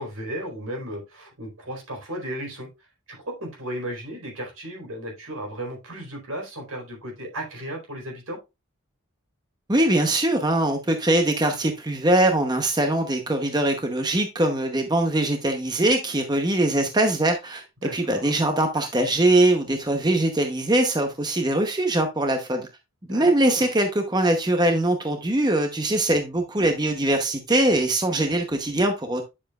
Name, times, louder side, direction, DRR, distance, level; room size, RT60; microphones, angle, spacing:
voice 1, 0.0-2.7 3.1-8.4 17.8-18.3 23.1-23.6, right 1 dB, 85° right, 4.4 m, -35 dB
voice 2, 9.7-17.6 17.9-22.7 23.1-29.2, right 1 dB, 20° right, 0.8 m, -22 dB
9.9 x 7.0 x 2.4 m
head